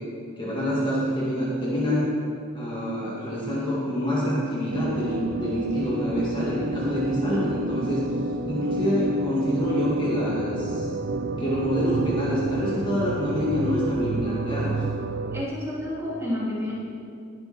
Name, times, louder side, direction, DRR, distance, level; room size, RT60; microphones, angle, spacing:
voice 1, 0.4-2.1 2.5-8.0 8.5-10.9 11.4-14.7, equal, 25° left, -7 dB, 2.3 m, -26 dB
sound 1, 4.7-15.5, right 2 dB, 50° right, 0.5 m, -30 dB
voice 2, 15.3-16.7, left 1 dB, 15° right, -8 dB, 3.2 m, -30 dB
20.0 x 7.7 x 4.4 m, 2.4 s
head